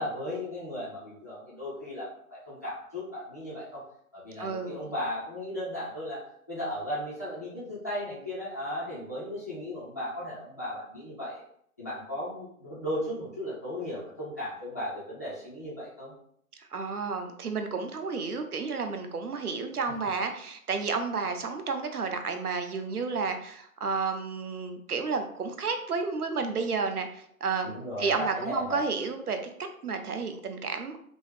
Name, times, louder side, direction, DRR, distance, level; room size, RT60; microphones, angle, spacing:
voice 1, 0.0-3.8 4.1-6.2 6.5-11.4 11.8-16.1 27.6-28.8, left 1 dB, 10° left, -9 dB, 0.4 m, -36 dB
voice 2, 4.4-4.9 16.6-27.7 28.0-31.0, right 4 dB, 75° right, 7 dB, 0.8 m, -31 dB
5.3 x 2.0 x 3.1 m, 0.68 s
figure-of-eight pair, 135°, 45 cm